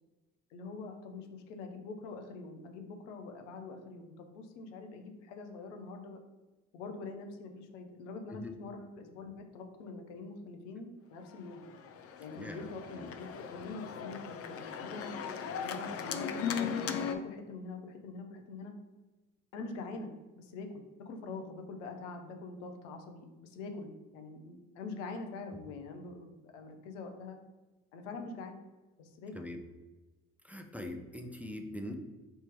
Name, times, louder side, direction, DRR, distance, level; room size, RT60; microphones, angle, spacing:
voice 1, 0.5-6.2 6.7-11.6 12.2-15.1 15.6-18.7 19.5-27.4 27.9-28.6 29.0-29.4, left 3 dB, 80° left, 4 dB, 0.7 m, -44 dB
Organ, 11.3-17.2, left 7 dB, 40° left, 0.5 m, -38 dB
voice 2, 12.3-13.1 29.3-29.6 30.4-31.9, left 1 dB, 5° right, 3 dB, 0.6 m, -42 dB
3.4 x 2.9 x 4.4 m, 1.2 s
hypercardioid pair, 45°, 36 cm